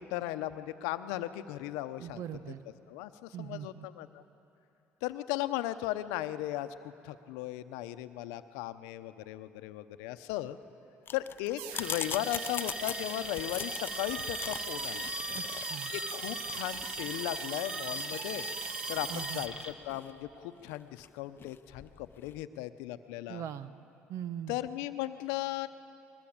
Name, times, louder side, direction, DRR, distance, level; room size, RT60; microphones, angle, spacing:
voice 1, 0.0-2.2 2.9-4.2 5.0-10.6 11.1-15.1 15.9-18.5 18.9-23.4 24.5-25.7, left 14 dB, 85° left, 11 dB, 0.8 m, -37 dB
voice 2, 2.0-2.6 3.3-3.9 15.4-15.9 19.1-19.4 23.3-23.7 24.1-24.6, right 10 dB, 65° right, 13 dB, 1.0 m, -41 dB
sound 1, 11.1-22.4, left 7 dB, 40° left, 0.6 m, -43 dB
sound 2, 11.6-19.5, right 11 dB, 90° right, 0.7 m, -42 dB
Alarm, 11.7-19.7, left 1 dB, 15° right, 2.0 m, -39 dB
21.0 x 19.5 x 8.7 m, 2.8 s
supercardioid pair, 70°, 5 cm